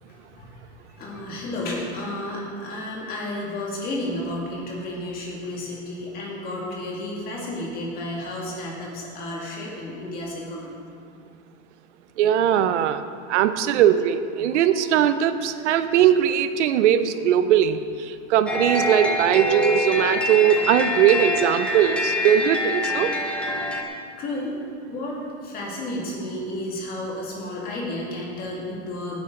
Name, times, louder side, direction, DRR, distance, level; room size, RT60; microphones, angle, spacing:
voice 1, 0.1-0.6 0.9-10.8 14.4-14.6 14.8-15.0 24.2-24.6 24.9-29.2, left 1 dB, 25° left, -3 dB, 2.4 m, -32 dB
voice 2, 12.2-13.0 13.3-23.1, right 10 dB, 80° right, 11 dB, 0.8 m, -20 dB
sound 1, 18.5-23.8, left 2 dB, 5° left, 0.5 m, -25 dB
16.5 x 9.8 x 3.9 m, 2.2 s
supercardioid pair, 170°, 35 cm